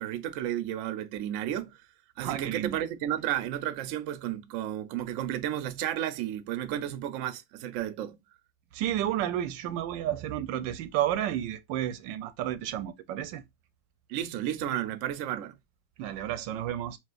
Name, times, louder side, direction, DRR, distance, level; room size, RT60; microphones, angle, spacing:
voice 1, 0.0-1.8 2.2-8.2 14.1-15.5, right 11 dB, 70° right, 0.8 m, -32 dB
voice 2, 2.2-2.8 8.7-13.4 16.0-17.0, right 11 dB, 85° right, 1.3 m, -31 dB
5.8 x 2.5 x 2.4 m
omnidirectional pair, 1.9 m